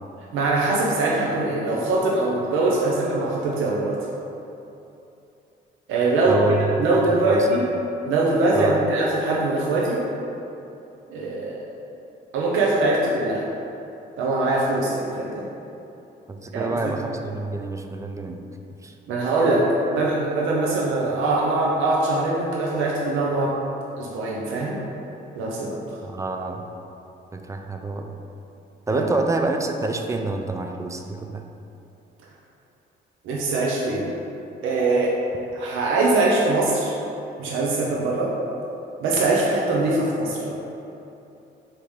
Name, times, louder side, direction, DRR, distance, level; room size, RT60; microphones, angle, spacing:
voice 1, 0.3-4.0 5.9-7.6 8.0-10.0 11.1-11.6 12.3-13.4 14.2-15.4 16.5-17.0 19.1-23.6 24.0-24.8 25.3-26.0 28.9-29.0 33.2-34.2 34.6-35.2 35.5-37.0 37.4-38.3 39.0-40.6, right 2 dB, 90° right, -4 dB, 0.6 m, -22 dB
voice 2, 6.3-6.6 6.9-7.5 8.5-8.8 16.3-18.4 18.8-18.9 26.0-26.6 27.3-28.1 28.9-31.4, right 2 dB, 15° right, 4 dB, 0.3 m, -27 dB
3.5 x 2.9 x 4.6 m, 2.9 s
cardioid pair, 90°, 20 cm